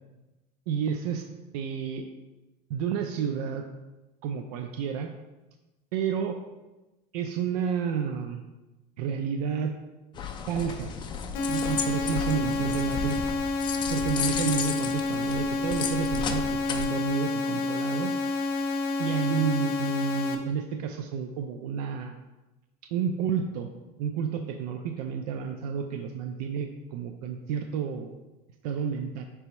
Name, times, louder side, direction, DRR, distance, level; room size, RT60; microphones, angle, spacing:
voice 1, 0.7-1.2 1.5-2.1 2.7-3.6 4.2-5.1 5.9-6.4 7.1-8.4 9.0-9.7 10.5-10.9 11.5-13.2 13.9-18.2 19.0-22.2 22.9-23.7 24.0-28.1 28.6-29.2, right 7 dB, 80° right, 5 dB, 0.4 m, -30 dB
sound 1, 10.1-16.8, left 6 dB, 25° left, 0.3 m, -34 dB
sound 2, 11.3-20.3, left 3 dB, 55° left, 0.6 m, -29 dB
5.1 x 3.4 x 2.9 m, 1.1 s
supercardioid pair, 130°, 20 cm